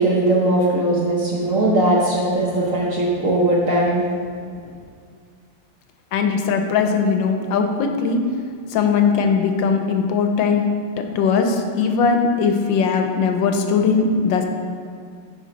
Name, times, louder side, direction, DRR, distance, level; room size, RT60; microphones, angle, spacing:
voice 1, 0.0-4.2, right 1 dB, 55° right, -3 dB, 1.0 m, -19 dB
voice 2, 6.1-8.2 8.7-10.6 11.1-14.4, left 5 dB, 80° left, 5 dB, 1.3 m, -19 dB
10.0 x 3.9 x 4.0 m, 2.1 s
omnidirectional pair, 2.1 m